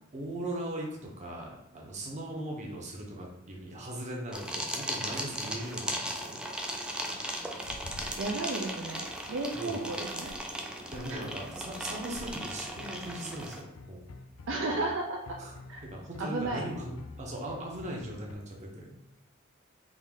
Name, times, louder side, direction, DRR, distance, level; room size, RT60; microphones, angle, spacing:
voice 1, 0.1-6.4 9.5-9.9 10.9-14.0 15.4-15.5 15.8-19.0, right 1 dB, 35° right, -1 dB, 0.8 m, -39 dB
sound 1, 4.3-13.6, right 1 dB, 5° right, 0.4 m, -37 dB
sound 2, 7.6-18.3, left 2 dB, 80° left, 0.4 m, -49 dB
voice 2, 8.2-10.3 11.1-11.3 14.5-15.4 15.7-15.9 16.2-16.6, right 2 dB, 65° right, 0 dB, 0.5 m, -33 dB
3.6 x 2.7 x 3.6 m, 0.89 s
head